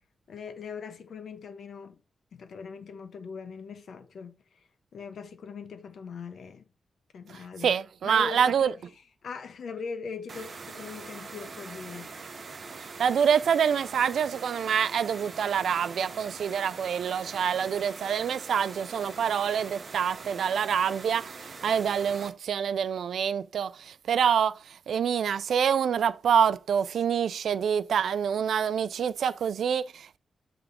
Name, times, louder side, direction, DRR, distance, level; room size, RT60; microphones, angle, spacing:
voice 1, 0.3-2.0 2.3-6.6 7.1-7.7 8.0-8.7 9.2-12.1, left 5 dB, 70° left, 0.8 m, -41 dB
voice 2, 7.3-8.7 12.8-30.2, right 7 dB, 75° right, 0.4 m, -26 dB
sound 1, 10.3-22.3, right 4 dB, 45° right, 0.8 m, -43 dB
7.9 x 3.5 x 3.6 m
wide cardioid pair, 140°, 0 cm